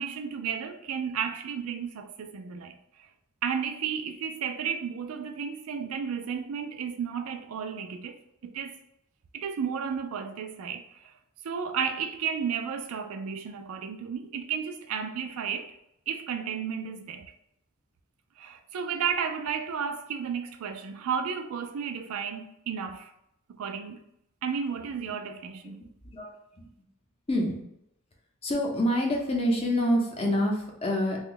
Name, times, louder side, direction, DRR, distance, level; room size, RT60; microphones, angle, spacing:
voice 1, 0.0-2.8 3.4-8.1 8.4-8.8 9.3-11.1 11.4-15.7 16.1-17.3 18.4-23.1 23.5-24.0 24.4-25.8, right 7 dB, 85° right, 0.4 m, -33 dB
voice 2, 26.0-26.7 27.3-27.6 28.4-31.2, equal, 30° left, 0.6 m, -27 dB
2.9 x 2.3 x 3.8 m
head